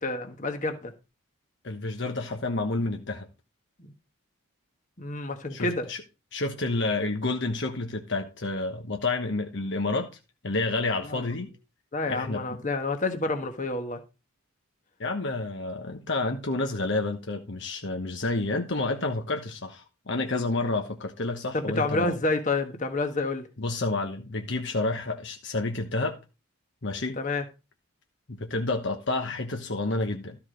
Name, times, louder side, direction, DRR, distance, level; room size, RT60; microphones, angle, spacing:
voice 1, 0.0-0.9 3.8-3.9 5.0-5.9 11.1-11.2 11.9-14.0 21.5-23.5 27.2-27.4, left 2 dB, 35° left, 1.5 m, -29 dB
voice 2, 1.6-3.3 5.5-6.0 6.3-10.1 10.4-11.5 12.1-12.4 15.0-22.2 23.6-26.2 26.8-27.2 28.3-30.4, left 2 dB, 55° left, 1.1 m, -29 dB
13.5 x 4.9 x 5.1 m
head